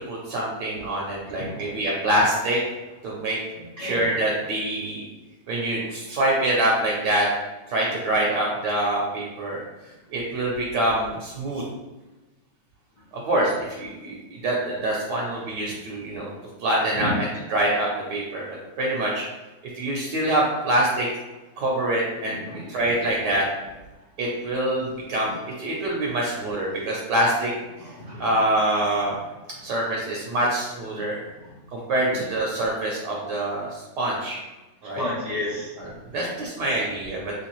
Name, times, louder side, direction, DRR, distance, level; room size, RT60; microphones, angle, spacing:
voice 1, 0.1-2.6 3.0-3.4 3.8-5.0 5.5-7.3 7.7-9.6 10.1-11.6 13.1-16.3 16.6-19.2 19.8-21.1 21.6-22.4 22.7-23.5 24.2-27.5 28.2-29.2 29.6-31.2 31.7-34.4 34.8-35.0 35.8-37.3, right 1 dB, 70° right, -3 dB, 1.2 m, -25 dB
voice 2, 1.3-1.8 3.5-4.1 15.6-15.7 16.9-17.2 22.2-23.0 25.2-25.3 27.7-28.3 30.9-31.1 32.1-32.2 34.8-35.7 36.1-36.3, left 1 dB, 35° left, -9 dB, 0.5 m, -33 dB
3.1 x 3.1 x 3.0 m, 1.1 s
omnidirectional pair, 2.0 m